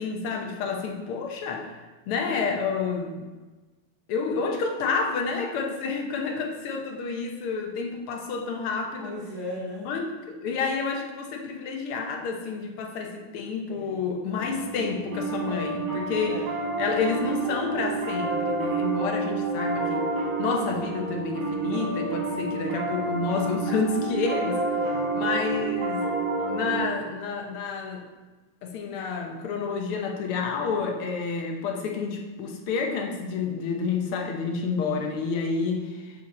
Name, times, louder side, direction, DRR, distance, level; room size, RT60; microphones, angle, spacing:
voice 1, 0.0-1.7 2.1-3.2 4.1-9.2 9.8-16.4 16.8-20.1 20.4-24.6 25.1-26.1 26.5-28.0 28.6-36.1, left 4 dB, 80° left, 2 dB, 1.8 m, -29 dB
voice 2, 9.0-9.9 13.7-14.0 16.2-16.6 24.8-25.5, left 1 dB, 65° left, -7 dB, 2.0 m, -38 dB
Piano, 14.3-26.8, right 3 dB, 70° right, 2.3 m, -29 dB
7.6 x 5.0 x 4.1 m, 1.2 s
omnidirectional pair, 2.4 m